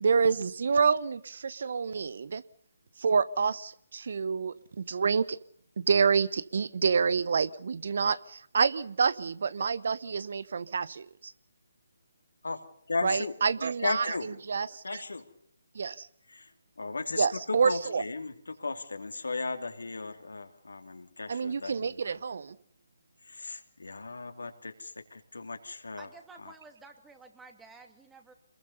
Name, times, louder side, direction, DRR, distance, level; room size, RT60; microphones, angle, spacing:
voice 1, 0.0-2.4 3.0-5.4 5.8-11.3 13.0-15.0 15.7-16.1 17.1-18.0 21.3-22.6, right 5 dB, 60° right, 19 dB, 0.9 m, -28 dB
voice 2, 12.4-14.3 14.8-15.2 16.3-16.5 16.8-17.3 17.6-22.0 23.3-26.1, left 3 dB, 75° left, 6 dB, 3.0 m, -36 dB
voice 3, 26.0-28.3, right 3 dB, 10° right, 5 dB, 2.5 m, -52 dB
26.5 x 21.5 x 5.6 m, 0.64 s
figure-of-eight pair, 145°, 0 cm